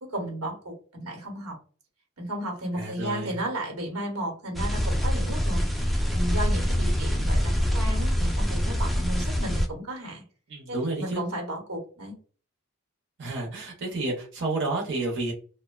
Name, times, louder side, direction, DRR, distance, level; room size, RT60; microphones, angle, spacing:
voice 1, 0.0-1.6 2.2-5.7 6.1-10.2 10.7-12.1, right 1 dB, 85° right, 1 dB, 1.0 m, -34 dB
voice 2, 2.7-3.3 10.5-11.2 13.2-15.3, right 2 dB, 55° right, -2 dB, 0.6 m, -30 dB
sound 1, 4.5-9.7, equal, ahead, 0.3 m, -25 dB
2.6 x 2.1 x 2.2 m, 0.39 s
head